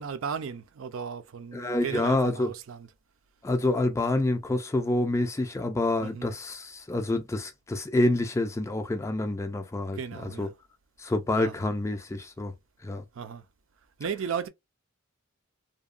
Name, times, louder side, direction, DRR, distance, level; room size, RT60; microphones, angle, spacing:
voice 1, 0.0-2.9 6.0-6.3 9.9-10.5 11.4-11.5 13.1-13.4 14.0-14.5, right 6 dB, 65° right, 0.4 m, -35 dB
voice 2, 1.5-2.5 3.4-10.5 11.0-12.5 12.8-13.0, left 2 dB, 15° left, 0.3 m, -27 dB
2.8 x 2.2 x 2.4 m
head